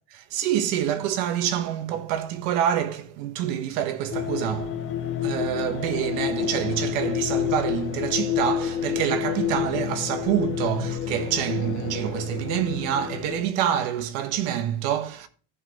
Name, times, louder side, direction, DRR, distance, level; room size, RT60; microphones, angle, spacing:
voice 1, 0.1-15.3, right 10 dB, 80° right, 1.3 m, -27 dB
sound 1, 4.1-13.4, left 10 dB, 35° left, 1.1 m, -29 dB
15.0 x 5.4 x 3.0 m
cardioid pair, 140°, 34 cm